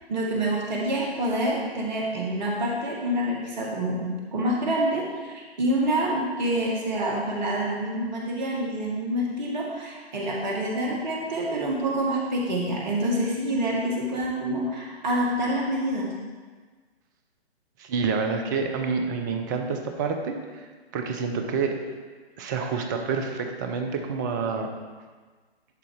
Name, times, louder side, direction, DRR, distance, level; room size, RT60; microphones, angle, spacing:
voice 1, 0.1-16.1, right 1 dB, 45° right, -2 dB, 1.8 m, -27 dB
voice 2, 17.8-20.7 20.9-21.8 22.4-24.7, right 5 dB, 20° right, 4 dB, 0.5 m, -28 dB
10.5 x 4.0 x 4.7 m, 1.4 s
figure-of-eight pair, 135°, 32 cm